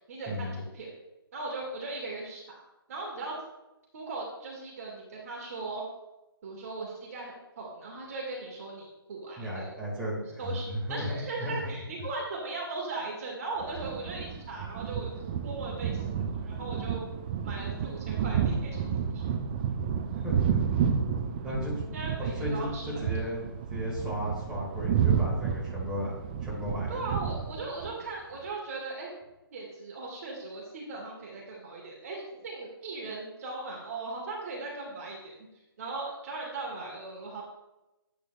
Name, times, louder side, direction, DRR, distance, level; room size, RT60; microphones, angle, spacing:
voice 1, 0.1-0.9 1.3-2.4 2.9-3.4 3.9-5.8 6.4-9.7 10.4-15.1 15.4-16.1 16.3-17.0 17.4-19.2 21.9-23.3 26.9-29.1 29.5-35.3 35.8-37.4, right 3 dB, 40° right, -2 dB, 1.9 m, -38 dB
voice 2, 9.4-11.1 11.4-11.5 20.1-20.7 21.4-26.1 26.4-27.0, equal, 5° right, -7 dB, 2.1 m, -35 dB
sound 1, 13.6-27.9, right 7 dB, 25° right, 0.5 m, -31 dB
9.2 x 7.8 x 2.4 m, 0.96 s
figure-of-eight pair, 135°, 13 cm